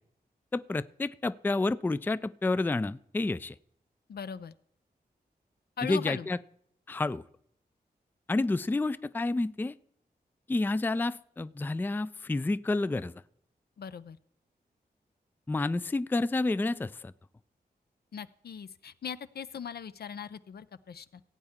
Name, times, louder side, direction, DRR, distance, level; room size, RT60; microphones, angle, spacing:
voice 1, 0.5-3.5 5.8-6.4 6.9-7.2 8.3-9.8 10.5-13.2 15.5-17.1, left 2 dB, 10° left, 17 dB, 0.3 m, -29 dB
voice 2, 4.1-4.5 5.8-6.3 13.8-14.2 18.1-21.3, left 7 dB, 75° left, 14 dB, 0.5 m, -40 dB
16.5 x 8.6 x 3.6 m, 0.69 s
wide cardioid pair, 75°, 17 cm